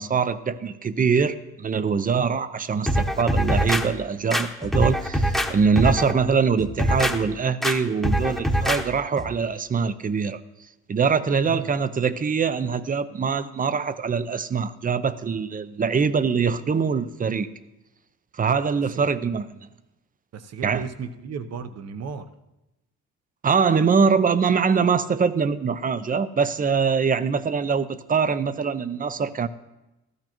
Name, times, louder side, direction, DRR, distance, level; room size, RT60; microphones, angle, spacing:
voice 1, 0.0-10.4 10.9-17.5 18.4-19.5 20.6-20.8 23.4-29.5, right 5 dB, 30° right, 14 dB, 0.6 m, -23 dB
sound 1, 2.9-3.8 4.3-5.5 5.8-6.1 6.6-7.1 7.6-7.8 8.0-8.8 9.2-9.3, equal, ahead, 1.0 m, -23 dB
voice 2, 20.3-22.3, right 6 dB, 55° right, 11 dB, 0.9 m, -34 dB
14.0 x 13.0 x 3.0 m, 0.97 s
cardioid pair, 90°, 30 cm